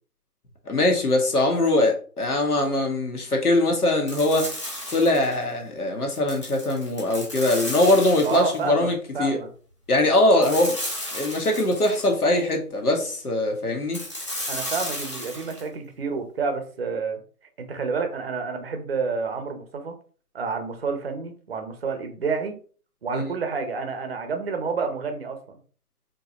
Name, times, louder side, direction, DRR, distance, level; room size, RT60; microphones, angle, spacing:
voice 1, 0.7-4.5 4.9-9.4 9.9-10.7 11.1-14.0 23.1-23.3, left 1 dB, 70° left, 2 dB, 1.6 m, -22 dB
sound 1, 4.1-5.4 6.1-8.7 10.4-12.1 13.9-15.6, left 1 dB, 20° left, 0.6 m, -33 dB
voice 2, 8.2-9.5 10.4-10.6 14.5-17.2 17.6-19.9 20.3-22.6 23.0-25.6, right 4 dB, 40° right, 6 dB, 0.7 m, -29 dB
4.4 x 2.9 x 2.9 m, 0.41 s
figure-of-eight pair, 150°, 46 cm